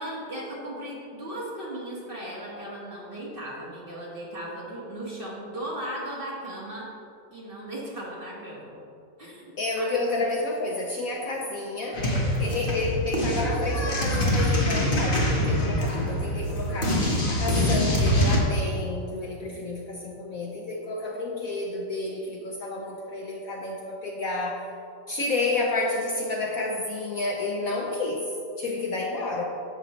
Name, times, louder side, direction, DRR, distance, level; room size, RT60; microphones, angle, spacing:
voice 1, 0.0-6.9 7.3-8.7 9.2-10.0 11.9-12.3, right 1 dB, 30° right, -5 dB, 1.7 m, -37 dB
voice 2, 9.6-12.0 12.4-24.6 25.1-28.3 28.6-29.4, left 2 dB, 60° left, -1 dB, 1.0 m, -30 dB
sound 1, 11.9-18.4, equal, 30° left, 1.4 m, -24 dB
10.5 x 7.4 x 3.1 m, 2.7 s
omnidirectional pair, 1.9 m